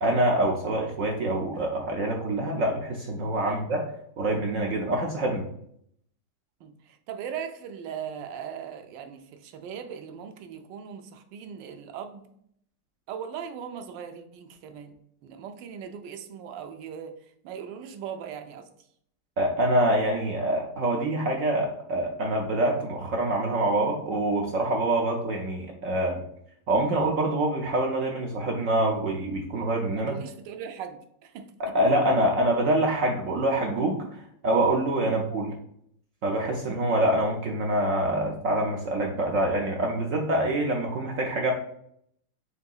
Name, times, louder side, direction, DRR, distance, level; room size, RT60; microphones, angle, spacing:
voice 1, 0.0-3.8 4.2-5.5 19.4-26.2 26.7-30.1 31.7-35.5 36.2-41.5, right 1 dB, 70° right, 0 dB, 0.8 m, -25 dB
voice 2, 6.6-12.3 13.1-14.9 15.2-17.2 17.4-18.7 30.0-31.5 35.0-35.2, right 8 dB, 85° right, 6 dB, 1.3 m, -39 dB
6.6 x 2.7 x 2.3 m, 0.68 s
omnidirectional pair, 1.9 m